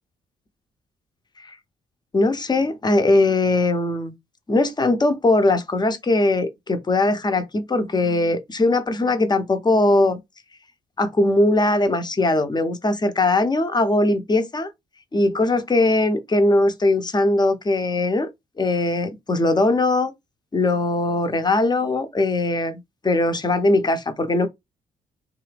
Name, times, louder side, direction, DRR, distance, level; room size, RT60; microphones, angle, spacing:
voice 1, 2.1-4.1 4.5-10.2 11.0-14.7 15.1-18.3 18.6-20.1 20.5-24.5, left 2 dB, 25° left, 0.8 m, -20 dB
2.6 x 2.5 x 3.3 m
hypercardioid pair, 45°, 18 cm